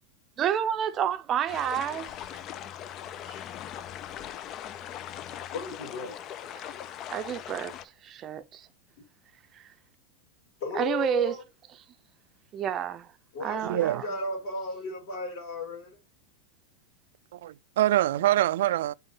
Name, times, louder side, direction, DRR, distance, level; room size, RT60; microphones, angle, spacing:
voice 1, 0.4-2.1 6.5-6.8 7.1-7.7 8.0-8.7 9.5-9.6 10.7-11.4 12.5-13.1 13.4-14.1, right 9 dB, 25° right, 0.6 m, -29 dB
sound 1, 1.5-7.8, left 10 dB, 30° left, 0.4 m, -40 dB
voice 2, 5.5-6.2 10.6-11.4 13.3-16.0, left 3 dB, 55° left, 4.0 m, -35 dB
voice 3, 13.6-14.0 17.3-18.9, right 14 dB, 75° right, 0.3 m, -25 dB
5.5 x 3.7 x 5.3 m
supercardioid pair, 160°, 0 cm